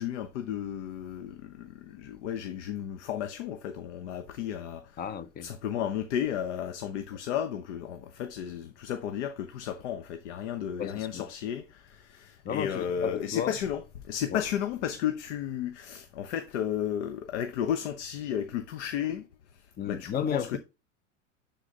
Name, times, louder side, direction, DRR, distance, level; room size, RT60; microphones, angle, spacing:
voice 1, 0.0-5.0 5.4-19.3 19.5-20.6, left 9 dB, 65° left, 0.9 m, -33 dB
voice 2, 5.0-5.5 10.8-11.3 12.4-13.6 14.3-14.4 19.8-20.6, left 8 dB, 25° left, 0.6 m, -34 dB
9.7 x 4.1 x 2.8 m
hypercardioid pair, 100°, 38 cm